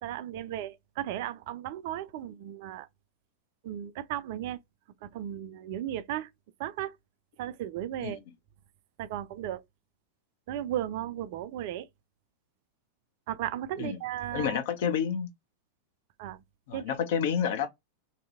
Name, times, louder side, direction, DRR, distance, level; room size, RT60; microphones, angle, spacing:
voice 1, 0.0-2.9 3.6-4.6 5.0-6.3 6.6-7.0 7.4-8.2 9.0-9.6 10.5-11.9 13.3-14.6 16.2-16.4 16.7-17.0, right 12 dB, 50° right, 0.3 m, -35 dB
voice 2, 14.3-15.3 16.7-17.7, left 8 dB, 55° left, 0.6 m, -29 dB
2.7 x 2.7 x 2.4 m
figure-of-eight pair, 90°, 0 cm